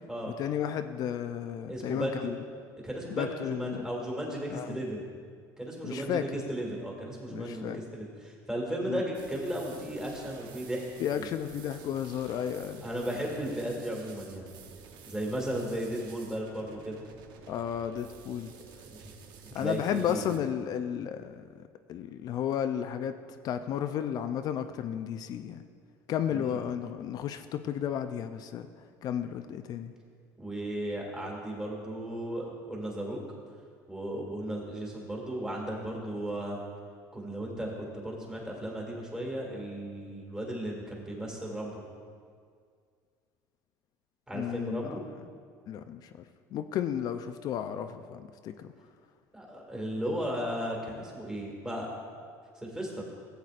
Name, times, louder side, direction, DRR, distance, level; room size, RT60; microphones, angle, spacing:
voice 1, 0.4-2.3 3.1-3.8 4.5-4.8 5.8-6.2 7.3-7.8 8.9-9.0 11.0-12.8 17.5-18.5 19.5-21.4 21.9-23.1 23.4-25.6 26.1-28.7 29.0-29.9 44.3-45.0 45.7-46.1 46.5-48.7, left 9 dB, 50° left, 9 dB, 0.4 m, -33 dB
voice 2, 1.7-2.3 2.8-5.0 5.6-10.8 11.1-11.3 12.8-14.5 15.0-17.0 18.9-19.1 19.4-20.3 26.3-26.6 30.4-33.2 33.9-36.6 37.1-41.8 44.3-45.0 49.3-52.0 52.6-53.0, right 1 dB, 10° right, -2 dB, 2.0 m, -35 dB
sound 1, 9.1-20.4, right 6 dB, 60° right, 0.8 m, -51 dB
14.5 x 8.0 x 2.5 m, 2.1 s
supercardioid pair, 105°, 8 cm